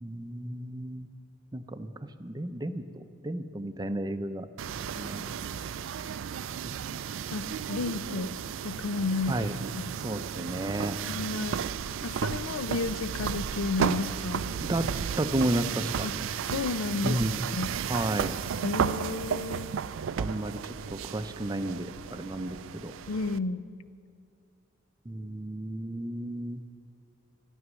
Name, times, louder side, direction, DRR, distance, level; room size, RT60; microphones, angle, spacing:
voice 1, 0.0-1.1 1.5-4.5 5.0-5.2 6.6-6.7 9.3-9.6 10.0-11.0 14.7-14.9 15.2-16.1 17.0-17.5 17.9-18.4 20.2-22.9 25.1-26.6, right 1 dB, 20° right, 10 dB, 0.5 m, -32 dB
sound 1, 4.6-23.4, right 7 dB, 75° right, 0.4 m, -34 dB
voice 2, 7.3-8.4 8.6-9.4 9.8-9.9 11.1-11.7 12.0-14.5 16.0-16.1 16.5-17.2 17.5-17.7 18.6-19.7 23.1-23.6, left 3 dB, 85° left, 15 dB, 0.5 m, -32 dB
13.0 x 12.5 x 6.2 m, 2.4 s
head